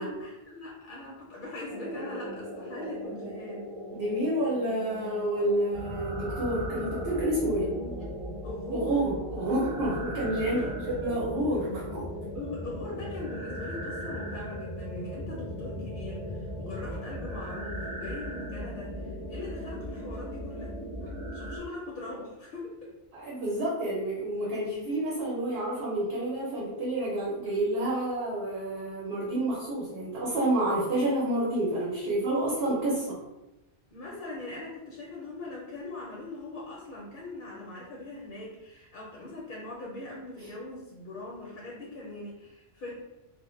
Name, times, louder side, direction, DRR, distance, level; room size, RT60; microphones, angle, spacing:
voice 1, 0.0-3.7 7.6-8.0 8.4-9.0 10.5-10.8 12.3-22.9 33.9-42.9, left 2 dB, 60° left, -4 dB, 0.6 m, -41 dB
sound 1, 1.7-21.6, equal, 30° right, 0.9 m, -38 dB
voice 2, 3.9-7.7 8.7-10.6 11.0-12.0 23.1-33.2, right 1 dB, 70° right, -6 dB, 0.9 m, -29 dB
2.1 x 2.0 x 3.0 m, 0.99 s
omnidirectional pair, 1.1 m